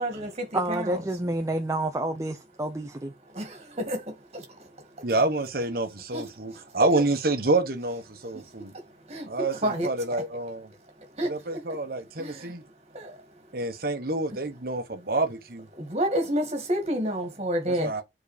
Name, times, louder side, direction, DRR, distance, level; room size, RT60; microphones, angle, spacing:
voice 1, 0.0-1.0 3.3-4.0 6.1-6.2 9.1-9.9 11.2-11.3 12.2-12.4 12.9-13.1 15.8-17.9, right 1 dB, 35° right, 2.2 m, -29 dB
voice 2, 0.5-3.1, right 1 dB, 15° right, 0.6 m, -29 dB
voice 3, 5.0-8.7 9.3-10.7 11.2-12.6 13.5-15.7 17.7-18.0, right 2 dB, 55° right, 1.2 m, -28 dB
7.3 x 4.1 x 5.1 m
head